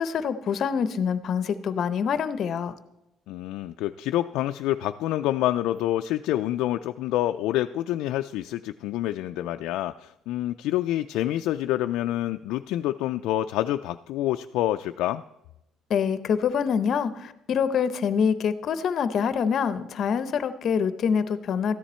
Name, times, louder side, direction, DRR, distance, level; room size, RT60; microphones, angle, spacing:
voice 1, 0.0-2.8 15.9-21.7, left 7 dB, 45° left, 13 dB, 0.7 m, -25 dB
voice 2, 3.3-15.2, left 14 dB, 80° left, 7 dB, 0.3 m, -27 dB
13.5 x 10.0 x 4.3 m, 0.88 s
cardioid pair, 160°, 0 cm